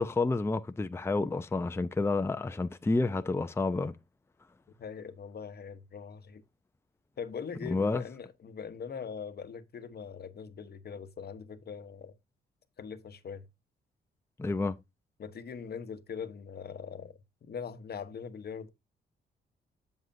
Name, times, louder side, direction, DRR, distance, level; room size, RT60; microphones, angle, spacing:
voice 1, 0.0-3.9 7.6-8.0 14.4-14.8, left 3 dB, 10° left, 0.6 m, -29 dB
voice 2, 4.8-6.4 7.2-12.1 12.8-13.5 15.2-18.7, left 6 dB, 50° left, 1.0 m, -41 dB
7.8 x 7.5 x 2.6 m
cardioid pair, 75°, 20 cm